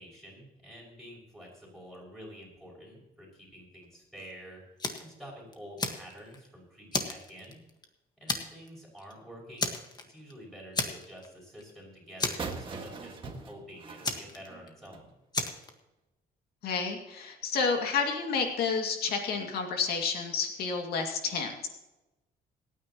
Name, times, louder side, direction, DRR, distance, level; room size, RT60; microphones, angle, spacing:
voice 1, 0.0-4.6 5.0-7.6 8.2-9.7 10.1-15.1, equal, ahead, -3 dB, 6.1 m, -48 dB
Fire, 4.8-5.1 5.5-6.5 6.9-7.8 8.3-8.7 9.0-9.1 9.6-10.3 10.7-11.3 11.6-11.7 12.2-13.0 14.0-14.9 15.3-15.7, left 3 dB, 25° left, 1.6 m, -33 dB
sound 1, 12.4-15.1, right 4 dB, 30° right, 1.8 m, -41 dB
voice 2, 16.6-21.7, left 5 dB, 75° left, 3 dB, 2.3 m, -30 dB
27.0 x 9.4 x 3.0 m, 1.0 s
cardioid pair, 145°, 16 cm